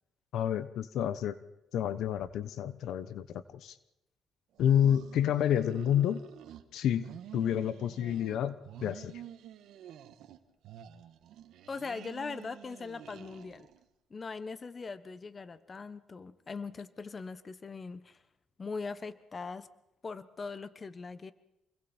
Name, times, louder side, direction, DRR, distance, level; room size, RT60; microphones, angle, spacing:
voice 1, 0.3-1.4 1.7-3.7 4.6-6.2 6.7-7.1 7.3-9.2, left 10 dB, 80° left, 14 dB, 1.1 m, -29 dB
sound 1, 4.6-6.6 6.9-8.4 8.6-10.4 10.6-13.8, right 10 dB, 80° right, 1.5 m, -49 dB
voice 2, 11.7-13.7 14.1-18.2 18.6-19.7 20.0-21.3, left 4 dB, 35° left, 14 dB, 1.2 m, -41 dB
28.0 x 22.0 x 4.5 m, 0.90 s
cardioid pair, 90°, 0 cm